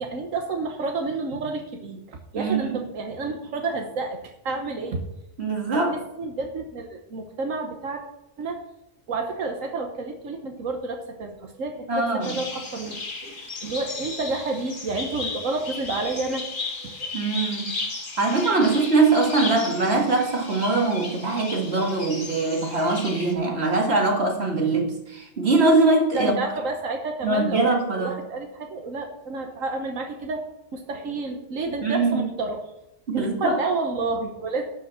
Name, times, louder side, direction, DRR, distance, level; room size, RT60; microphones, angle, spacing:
voice 1, 0.0-5.0 5.7-5.8 6.2-8.0 8.4-8.6 9.1-13.0 13.6-16.4 16.8-17.1 26.1-27.6 28.0-30.4 30.7-32.7 33.1-34.6, right 3 dB, 90° right, 3 dB, 1.5 m, -30 dB
voice 2, 2.3-2.8 5.4-5.9 11.9-12.4 13.2-13.4 17.1-17.7 18.2-26.4 27.2-28.2 31.8-32.2 33.1-33.6, right 3 dB, 55° right, 1 dB, 2.3 m, -22 dB
sound 1, 12.2-23.3, left 3 dB, 40° left, 1.6 m, -35 dB
12.0 x 5.6 x 7.3 m, 0.87 s
omnidirectional pair, 1.3 m